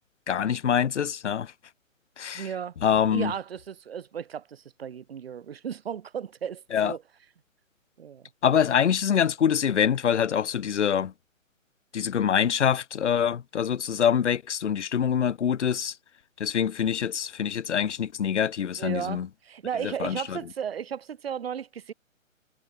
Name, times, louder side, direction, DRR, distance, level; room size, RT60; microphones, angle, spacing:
voice 1, 0.3-1.5 2.2-2.5 2.8-3.3 6.7-6.9 8.4-11.1 11.9-16.0 16.4-19.3 19.8-20.4, left 8 dB, 60° left, 1.0 m, -25 dB
voice 2, 2.3-2.7 3.1-7.0 8.0-8.3 18.8-21.9, right 8 dB, 45° right, 2.6 m, -35 dB
hypercardioid pair, 155°, 40 cm